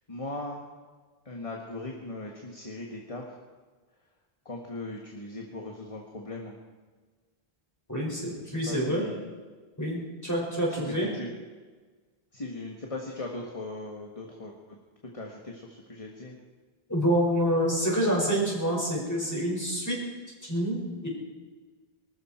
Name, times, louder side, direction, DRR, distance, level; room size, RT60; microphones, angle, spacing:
voice 1, 0.1-0.6 1.3-3.4 4.5-6.6 8.4-9.3 10.7-11.3 12.3-14.8 15.1-16.4, left 2 dB, 35° left, 0 dB, 1.8 m, -39 dB
voice 2, 7.9-9.0 9.8-11.1 16.9-20.0 20.4-21.1, equal, 15° left, -3 dB, 5.6 m, -27 dB
23.5 x 13.5 x 4.5 m, 1.4 s
omnidirectional pair, 1.0 m